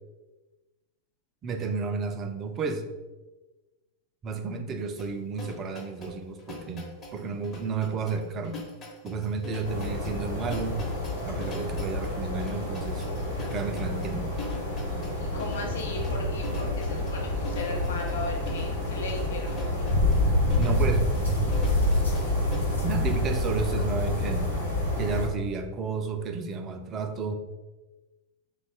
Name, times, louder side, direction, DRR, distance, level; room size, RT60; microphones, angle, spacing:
voice 1, 1.4-2.9 4.2-8.6 9.0-10.9 11.3-13.1 13.5-14.4 20.6-21.1 22.8-24.5 25.0-27.3, right 4 dB, 30° right, 7 dB, 0.4 m, -32 dB
sound 1, 5.0-22.6, left 1 dB, 30° left, 0.9 m, -43 dB
sound 2, 9.6-25.3, left 1 dB, 85° left, 1.2 m, -28 dB
voice 2, 15.2-19.9, left 2 dB, 60° left, 0 dB, 0.7 m, -37 dB
3.2 x 2.3 x 4.1 m, 1.1 s
figure-of-eight pair, 90°, 0 cm